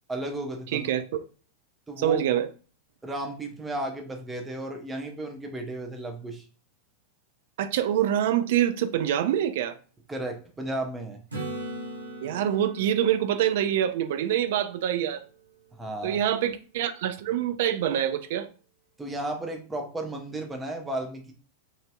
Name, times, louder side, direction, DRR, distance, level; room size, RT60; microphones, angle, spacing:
voice 1, 0.1-0.9 1.9-2.2 3.0-6.4 10.1-11.2 15.8-16.2 19.0-21.3, right 1 dB, 10° right, 0.6 m, -34 dB
voice 2, 0.7-1.2 2.0-2.5 7.6-9.8 12.2-15.2 16.0-18.5, right 10 dB, 55° right, 0.3 m, -25 dB
Acoustic guitar / Strum, 11.3-15.1 19.9-20.0, right 1 dB, 80° right, 0.8 m, -40 dB
3.1 x 2.7 x 2.2 m
figure-of-eight pair, 90°, 0 cm